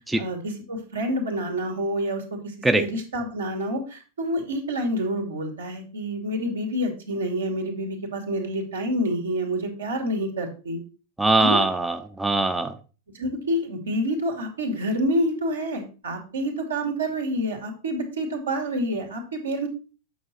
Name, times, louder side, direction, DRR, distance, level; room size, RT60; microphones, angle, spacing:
voice 1, 0.2-10.8 11.4-11.6 13.1-19.7, equal, 70° right, 3 dB, 2.4 m, -28 dB
voice 2, 11.2-12.8, right 2 dB, 5° right, 8 dB, 0.7 m, -21 dB
9.0 x 6.3 x 4.3 m, 0.34 s
figure-of-eight pair, 90°, 0 cm